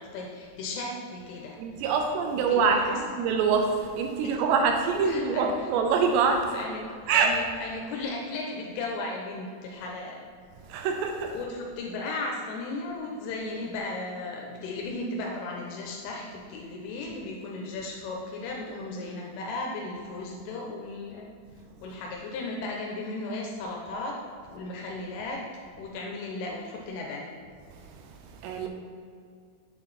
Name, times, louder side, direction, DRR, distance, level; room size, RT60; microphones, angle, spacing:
voice 1, 0.0-1.6 2.3-3.0 4.2-4.3 5.1-5.5 6.5-6.8 7.1-10.2 11.3-21.3 21.8-24.2 24.5-25.4 25.8-27.3, left 2 dB, 85° left, -1 dB, 3.4 m, -35 dB
voice 2, 1.6-6.6 7.1-7.4 10.6-11.4 21.7-21.9 27.7-28.7, right 5 dB, 80° right, 3 dB, 2.6 m, -25 dB
8.1 x 7.7 x 4.2 m, 2.2 s
omnidirectional pair, 5.6 m